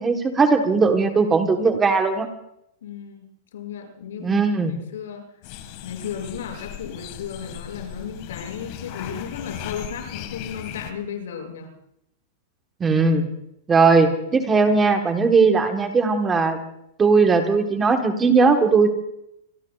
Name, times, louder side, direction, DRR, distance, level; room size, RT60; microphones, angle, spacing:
voice 1, 0.0-2.3 4.2-4.7 12.8-13.2 13.7-16.6 17.0-18.9, right 4 dB, 10° right, 5 dB, 1.2 m, -18 dB
voice 2, 2.8-3.3 3.5-5.2 5.8-11.7, left 7 dB, 90° left, 2 dB, 6.4 m, -34 dB
sound 1, 5.4-10.9, left 11 dB, 35° left, 1.7 m, -37 dB
26.5 x 23.0 x 2.4 m, 0.77 s
supercardioid pair, 180°, 0 cm